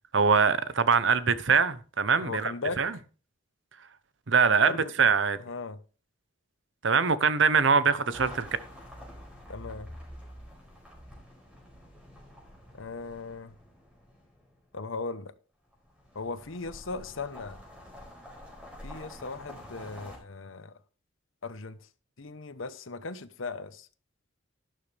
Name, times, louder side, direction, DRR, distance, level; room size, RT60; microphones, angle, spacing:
voice 1, 0.1-3.0 4.3-4.7 5.0-5.4 6.8-8.5, right 5 dB, 65° right, 0.8 m, -23 dB
voice 2, 2.2-2.8 4.6-4.8 5.4-5.8 9.5-9.9 12.7-13.5 14.7-15.3 16.1-17.6 18.8-20.7 21.4-21.8 22.2-23.9, left 3 dB, 80° left, 1.0 m, -37 dB
sound 1, 8.1-14.6 15.7-20.2, equal, 5° right, 4.6 m, -48 dB
12.0 x 11.5 x 3.4 m
head